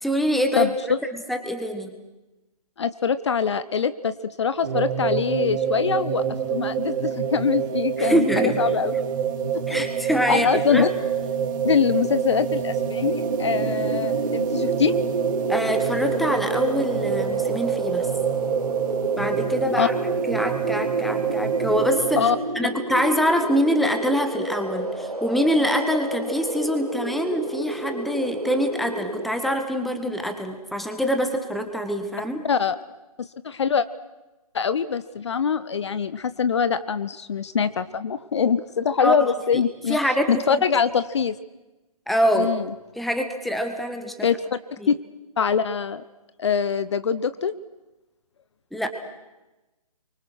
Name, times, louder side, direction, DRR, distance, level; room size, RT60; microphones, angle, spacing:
voice 1, 0.0-0.7 1.3-1.9 8.0-8.6 9.7-10.9 15.5-18.1 19.2-19.9 20.3-22.3 22.5-32.4 39.0-39.6 39.9-40.6 42.1-42.5 42.9-44.3 44.8-44.9 48.7-48.9, equal, ahead, 6 dB, 1.6 m, -24 dB
voice 2, 0.6-1.0 2.8-6.2 6.5-8.9 9.7-9.8 10.3-10.9 11.6-14.9 19.7-19.9 22.2-22.4 32.4-32.8 33.2-33.9 34.5-40.0 40.3-41.4 42.4-42.7 44.2-44.6 44.9-45.0 45.4-46.0 46.4-47.5, left 6 dB, 50° left, 14 dB, 0.9 m, -23 dB
sound 1, 4.6-22.2, right 7 dB, 30° right, 3.3 m, -26 dB
sound 2, 13.1-29.3, right 1 dB, 90° right, 2.3 m, -31 dB
29.5 x 24.5 x 6.3 m, 1.1 s
figure-of-eight pair, 140°, 19 cm